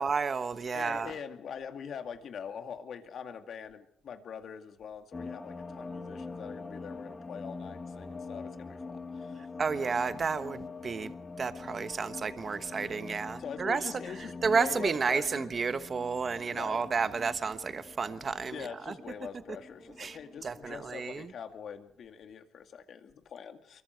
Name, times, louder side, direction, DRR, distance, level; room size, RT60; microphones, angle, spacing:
voice 1, 0.0-1.1 9.6-11.1 11.4-13.9 14.4-18.9 20.0-21.3, right 5 dB, 40° right, 1.2 m, -31 dB
voice 2, 0.7-9.5 12.7-12.8 13.4-15.5 16.5-16.8 18.5-23.8, left 7 dB, 60° left, 2.4 m, -43 dB
sound 1, 5.1-21.0, left 4 dB, 25° left, 1.7 m, -44 dB
24.5 x 23.0 x 4.6 m
cardioid pair, 90°, 0 cm